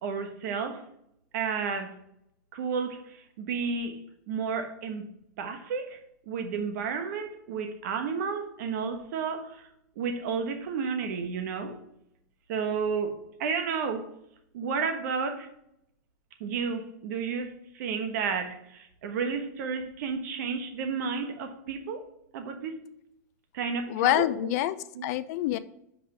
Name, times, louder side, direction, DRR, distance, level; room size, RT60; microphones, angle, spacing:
voice 1, 0.0-0.8 1.3-2.0 2.5-5.1 5.4-6.0 6.3-9.7 10.0-11.8 12.5-14.1 14.5-15.5 16.4-22.0 22.3-22.8 23.5-24.5 24.9-25.0, right 5 dB, 70° right, 1.2 m, -32 dB
voice 2, 23.9-24.8 25.0-25.6, left 15 dB, 60° left, 0.5 m, -26 dB
5.6 x 5.0 x 5.8 m
hypercardioid pair, 120°, 9 cm